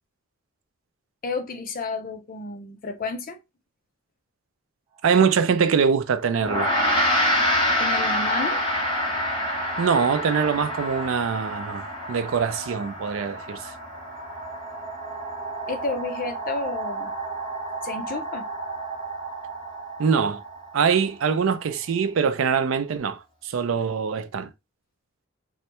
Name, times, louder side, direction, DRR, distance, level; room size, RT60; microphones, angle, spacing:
voice 1, 1.2-3.4 7.8-8.6 15.7-17.1 17.8-18.5, left 3 dB, 45° left, 0.5 m, -31 dB
sound 1, 5.0-5.1 6.1-22.7, right 3 dB, 30° right, 0.8 m, -37 dB
voice 2, 5.0-6.7 9.8-13.7 20.0-20.4 20.7-24.5, right 6 dB, 70° right, 0.4 m, -23 dB
Gong, 6.4-15.9, left 1 dB, 25° left, 1.1 m, -27 dB
3.2 x 2.2 x 2.8 m
head